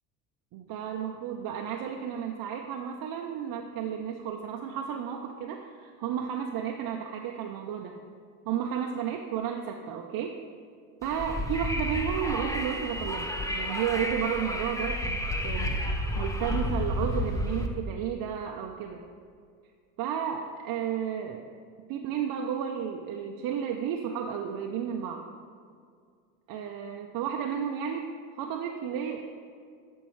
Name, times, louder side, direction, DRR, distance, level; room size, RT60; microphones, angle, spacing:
voice 1, 0.5-8.0 8.5-10.4 11.0-15.8 16.2-19.1 20.0-21.4 21.9-25.3 26.5-29.2, right 8 dB, 50° right, 2 dB, 0.6 m, -33 dB
Wind, 11.0-17.7, left 1 dB, 5° left, 0.6 m, -31 dB
12.5 x 4.6 x 3.1 m, 2.2 s
supercardioid pair, 80°, 45 cm